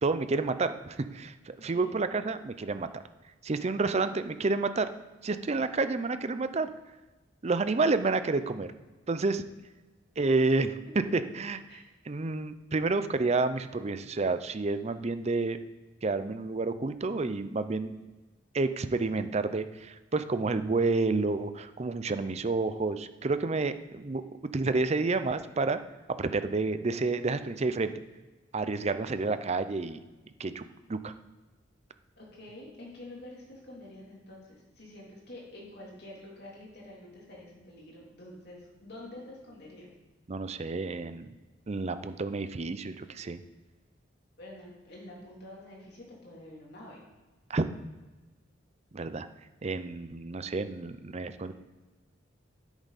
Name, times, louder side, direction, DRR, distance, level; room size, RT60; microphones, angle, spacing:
voice 1, 0.0-3.0 3.4-4.9 5.2-6.7 7.4-8.7 9.1-9.4 10.2-10.8 11.1-15.6 16.0-17.9 18.5-24.2 24.5-25.8 26.2-27.9 28.5-30.0 30.4-31.1 40.3-41.4 41.7-43.4 47.5-47.6 48.9-49.3 49.6-51.5, right 3 dB, 35° right, 11 dB, 0.5 m, -29 dB
voice 2, 1.6-1.9 11.0-11.1 11.7-11.8 17.9-18.1 32.2-39.9 44.4-47.0, left 1 dB, 60° left, -3 dB, 3.2 m, -48 dB
10.0 x 8.1 x 4.1 m, 1.2 s
head